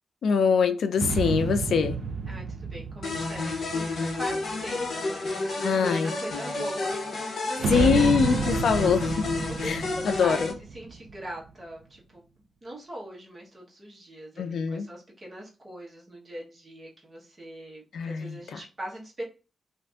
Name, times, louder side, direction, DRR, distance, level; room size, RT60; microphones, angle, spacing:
voice 1, 0.2-2.0 5.6-6.1 7.7-9.3 9.6-10.5 14.4-14.9 17.9-18.6, left 6 dB, 80° left, 8 dB, 0.4 m, -24 dB
sound 1, 1.0-4.7 7.6-11.4, right 4 dB, 80° right, 0.4 m, -31 dB
voice 2, 2.3-8.2 9.6-12.3 12.6-19.2, right 1 dB, 25° right, -3 dB, 1.0 m, -41 dB
sound 2, 3.0-10.5, left 3 dB, 60° left, 0.8 m, -31 dB
2.5 x 2.5 x 3.3 m, 0.33 s
wide cardioid pair, 180°, 0 cm